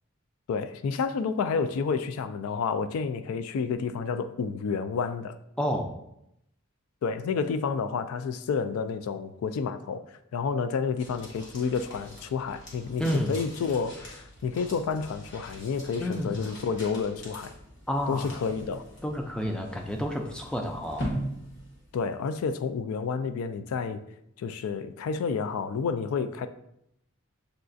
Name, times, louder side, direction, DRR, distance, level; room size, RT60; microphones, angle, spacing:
voice 1, 0.5-5.4 7.0-17.5 18.1-18.8 21.9-24.0 24.4-26.5, left 5 dB, 85° left, 11 dB, 0.3 m, -30 dB
voice 2, 5.6-5.9 13.0-13.4 16.0-16.4 17.9-18.3 19.0-21.1, equal, 5° left, 2 dB, 0.3 m, -30 dB
sound 1, 11.0-22.3, equal, 55° left, 1.1 m, -42 dB
6.6 x 2.4 x 2.5 m, 0.80 s
head